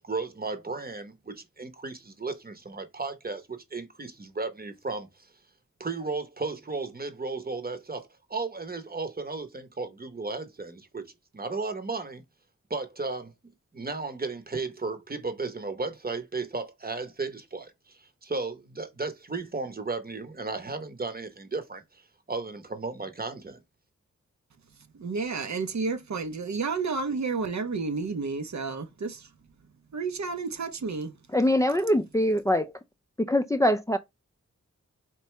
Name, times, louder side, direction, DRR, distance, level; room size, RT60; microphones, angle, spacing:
voice 1, 0.0-5.3 5.8-12.2 12.7-13.3 13.7-22.0 22.3-23.6, right 3 dB, 30° right, 0.9 m, -35 dB
voice 2, 25.0-29.3 29.9-31.1, right 4 dB, 65° right, 0.7 m, -31 dB
voice 3, 31.3-32.7 33.2-34.0, left 1 dB, 10° left, 0.4 m, -23 dB
4.5 x 2.7 x 3.1 m
wide cardioid pair, 55°, 30 cm